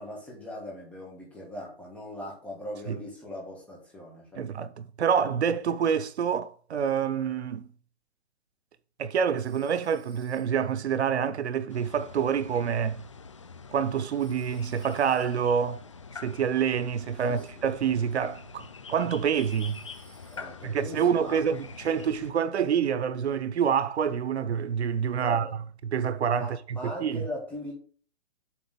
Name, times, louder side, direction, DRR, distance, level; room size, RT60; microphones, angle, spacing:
voice 1, 0.0-4.4 17.3-17.5 20.3-21.4 25.2-25.5 26.3-27.7, left 1 dB, 5° left, 1.8 m, -39 dB
voice 2, 4.4-7.7 9.0-13.0 13.7-15.8 16.2-19.8 20.6-25.5 25.8-27.2, right 7 dB, 85° right, 0.8 m, -27 dB
Telephone, 9.4-10.8 14.2-15.6 19.3-20.7, right 3 dB, 30° right, 2.7 m, -59 dB
sound 1, 11.7-22.3, left 5 dB, 30° left, 0.4 m, -46 dB
7.7 x 3.8 x 6.7 m
hypercardioid pair, 170°, 32 cm